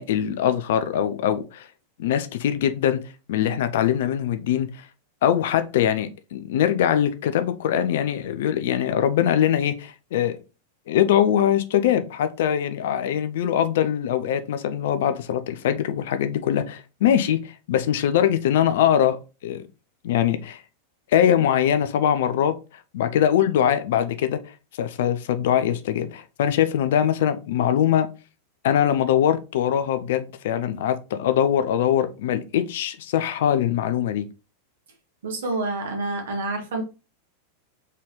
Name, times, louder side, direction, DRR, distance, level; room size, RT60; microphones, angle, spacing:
voice 1, 0.0-1.7 2.0-3.0 3.3-4.9 5.2-10.4 10.9-19.6 20.0-20.6 21.1-22.5 22.9-24.4 24.7-28.1 28.6-34.3, left 10 dB, 55° left, 0.5 m, -22 dB
voice 2, 35.2-36.8, right 2 dB, 60° right, 1.6 m, -28 dB
4.1 x 3.8 x 3.1 m
figure-of-eight pair, 90°, 0 cm